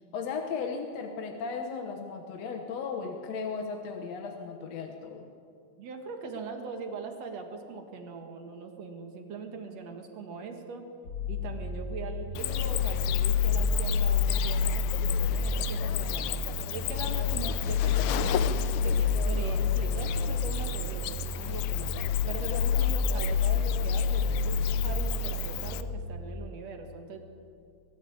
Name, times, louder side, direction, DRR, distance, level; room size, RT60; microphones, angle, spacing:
voice 1, 0.1-5.3, left 5 dB, 65° left, 3 dB, 2.2 m, -36 dB
voice 2, 5.8-10.9 11.3-16.3 16.7-21.9 22.3-27.2, right 4 dB, 60° right, 5 dB, 2.9 m, -41 dB
sound 1, 11.1-26.1, left 5 dB, 40° left, 1.8 m, -28 dB
Cricket, 12.3-25.8, left 13 dB, 80° left, 2.0 m, -35 dB
22.0 x 13.5 x 8.8 m, 2.4 s
omnidirectional pair, 3.4 m